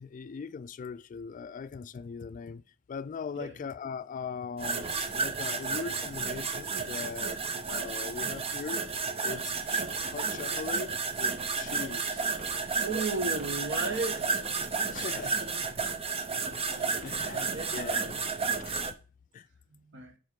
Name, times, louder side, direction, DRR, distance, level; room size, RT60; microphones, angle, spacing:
voice 1, 0.0-2.6 2.9-8.8 9.2-12.2 14.9-15.6 16.3-16.6 17.0-18.2 18.6-18.9 19.3-19.5, left 6 dB, 40° left, 0.3 m, -40 dB
sound 1, 4.6-18.9, right 5 dB, 30° right, 0.7 m, -32 dB
voice 2, 12.8-14.3 16.9-17.0 17.3-18.1 19.7-20.1, right 3 dB, 60° right, 1.5 m, -35 dB
7.6 x 4.7 x 5.2 m
head